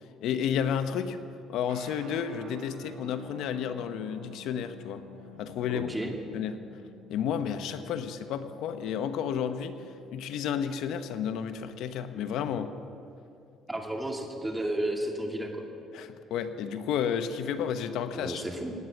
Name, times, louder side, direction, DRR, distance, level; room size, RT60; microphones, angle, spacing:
voice 1, 0.2-1.2 1.5-5.0 5.3-5.9 6.3-6.6 7.1-9.9 10.1-12.7 15.9-18.4, left 8 dB, 75° left, 9 dB, 1.0 m, -31 dB
sound 1, 1.7-9.9, left 2 dB, 85° right, 2.4 m, -50 dB
voice 2, 5.7-6.1 13.7-15.7 18.1-18.7, right 1 dB, 10° right, 2 dB, 2.3 m, -32 dB
18.0 x 9.2 x 8.5 m, 2.6 s
cardioid pair, 110°, 0 cm